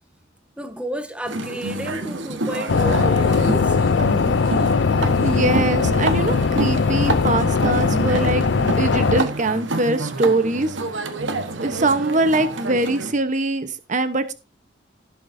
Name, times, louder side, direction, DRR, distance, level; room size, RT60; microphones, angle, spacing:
voice 1, 0.6-3.8, right 1 dB, 5° right, 1.0 m, -31 dB
sound 1, 1.3-13.1, right 2 dB, 80° right, 1.3 m, -28 dB
sound 2, 2.7-9.2, left 4 dB, 65° left, 0.5 m, -19 dB
voice 2, 5.2-10.8 11.5-14.3, right 2 dB, 40° right, 1.0 m, -22 dB
16.5 x 7.1 x 2.7 m
head